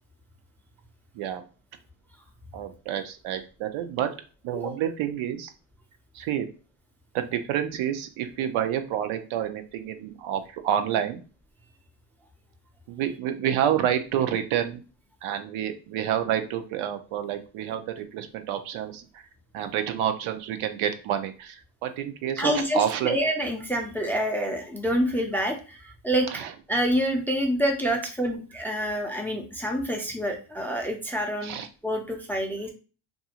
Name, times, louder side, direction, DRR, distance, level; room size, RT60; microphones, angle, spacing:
voice 1, 2.5-4.1 4.4-5.5 6.1-6.5 7.1-11.2 12.9-14.8 15.2-19.2 19.5-23.2 26.3-26.5 31.4-31.7, right 10 dB, 75° right, 8 dB, 0.6 m, -28 dB
voice 2, 22.4-26.3 26.7-31.6 31.8-32.7, equal, 5° left, 2 dB, 0.4 m, -27 dB
2.6 x 2.4 x 2.8 m, 0.35 s
cardioid pair, 100°, 49 cm